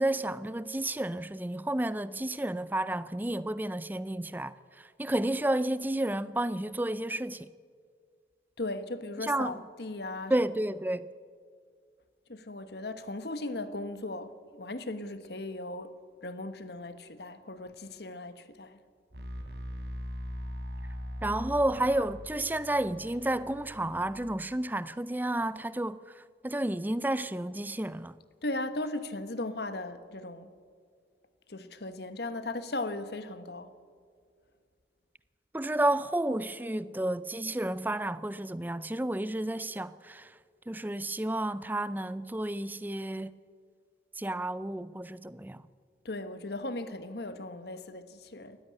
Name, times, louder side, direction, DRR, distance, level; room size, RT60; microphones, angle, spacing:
voice 1, 0.0-7.5 9.2-9.6 10.3-11.1 21.2-26.0 26.4-28.1 35.5-40.3 40.7-43.3 44.2-45.6, right 1 dB, 10° right, 0.4 m, -31 dB
voice 2, 8.6-10.3 12.3-15.9 16.2-18.8 28.4-30.5 31.5-33.7 46.0-48.6, left 2 dB, 65° left, 1.3 m, -37 dB
sound 1, 19.1-24.2, equal, 70° right, 3.6 m, -41 dB
18.5 x 14.5 x 9.8 m
head